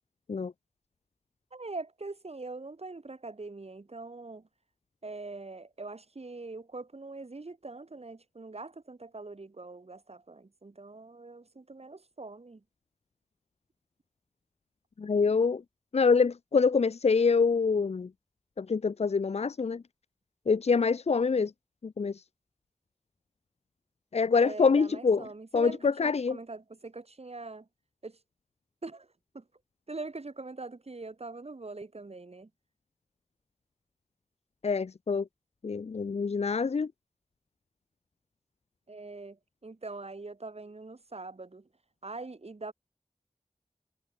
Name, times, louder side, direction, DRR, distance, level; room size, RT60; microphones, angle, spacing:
voice 1, 1.5-4.5 5.0-12.6 24.4-27.7 28.0-28.2 28.8-29.1 29.3-29.4 29.9-32.5 38.9-41.7 42.0-42.7, right 3 dB, 65° right, 5.0 m, -43 dB
voice 2, 15.0-15.6 15.9-18.1 18.6-19.8 20.5-21.5 21.8-22.1 24.1-25.2 25.5-26.4 34.6-35.2 35.6-36.9, left 5 dB, 70° left, 0.5 m, -25 dB
wide cardioid pair, 50°, 11 cm